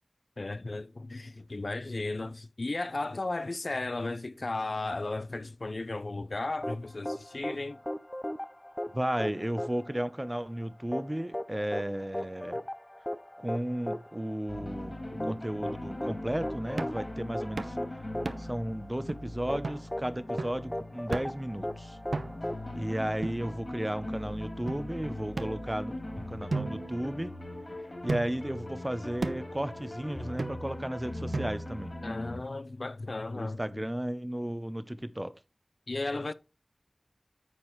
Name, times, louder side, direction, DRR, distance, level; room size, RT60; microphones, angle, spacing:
voice 1, 0.4-7.8 32.0-33.8 35.9-36.3, left 2 dB, 65° left, 0.5 m, -35 dB
sound 1, 6.6-23.5, left 1 dB, 20° left, 0.7 m, -38 dB
voice 2, 8.9-12.6 13.4-14.9 15.2-17.8 18.4-22.0 22.7-27.3 28.0-32.0 33.3-35.3, right 1 dB, 20° right, 0.7 m, -34 dB
sound 2, 14.5-32.4, left 1 dB, 45° left, 3.2 m, -41 dB
sound 3, 16.8-17.1 17.6-17.8 18.3-18.6 19.1-19.2 19.6-19.9 20.4-20.7 21.1-21.5 22.1-22.6 23.2-23.9 24.7-24.8 25.4-26.1 26.5-27.6 28.1-28.5 29.2-29.6 30.4-30.8 31.3-31.8, right 3 dB, 85° right, 0.7 m, -36 dB
9.8 x 6.8 x 3.1 m
wide cardioid pair, 45°, 0 cm